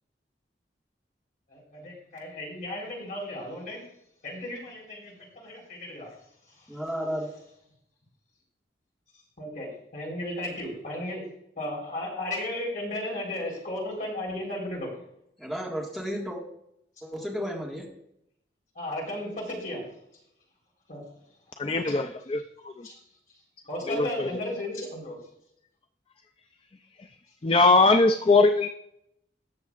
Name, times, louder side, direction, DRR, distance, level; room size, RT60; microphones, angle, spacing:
voice 1, 1.5-3.8 4.2-6.1 9.4-11.2 11.6-15.0 18.8-19.8 20.9-21.0 22.8-22.9 23.7-25.2, left 1 dB, 50° left, -2 dB, 3.9 m, -34 dB
voice 2, 6.7-7.3 15.4-16.4 17.0-17.9, equal, ahead, -3 dB, 1.7 m, -33 dB
voice 3, 21.6-22.9 23.9-24.3 27.4-28.7, left 3 dB, 30° left, 8 dB, 0.4 m, -21 dB
19.0 x 6.9 x 2.4 m, 0.76 s
head